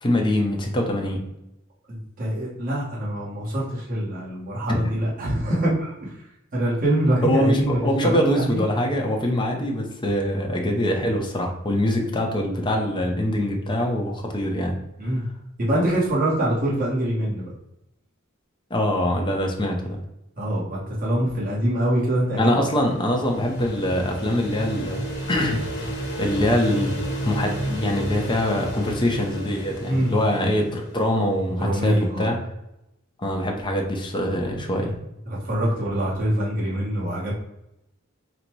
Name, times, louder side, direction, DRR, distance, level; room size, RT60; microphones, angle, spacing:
voice 1, 0.0-1.2 4.7-4.8 7.2-14.8 18.7-20.0 22.4-25.9 26.2-26.9 27.2-32.4 33.2-35.0, left 1 dB, 25° left, 1 dB, 0.7 m, -24 dB
voice 2, 1.9-6.2 6.5-8.6 15.0-15.2 15.6-17.5 20.4-22.4 29.9-30.1 31.6-32.3 35.3-37.3, right 1 dB, 40° right, -7 dB, 1.2 m, -24 dB
sound 1, 22.4-31.2, right 1 dB, 55° left, 1.0 m, -32 dB
4.0 x 2.2 x 4.5 m, 0.87 s
head